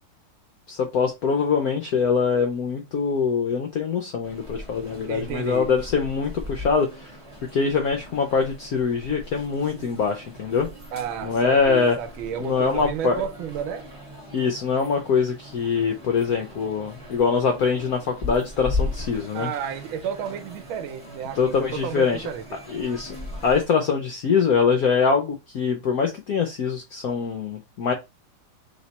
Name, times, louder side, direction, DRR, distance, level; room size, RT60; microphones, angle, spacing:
voice 1, 0.7-7.2 7.5-10.7 11.2-12.0 12.4-13.2 14.3-19.5 21.4-22.3 22.7-23.2 23.4-27.9, left 5 dB, 75° left, 0.8 m, -23 dB
sound 1, 4.2-23.7, left 2 dB, 20° right, 0.9 m, -38 dB
voice 2, 5.1-5.8 10.9-13.9 19.3-22.4, right 8 dB, 75° right, 1.4 m, -31 dB
3.6 x 3.1 x 4.0 m
omnidirectional pair, 2.3 m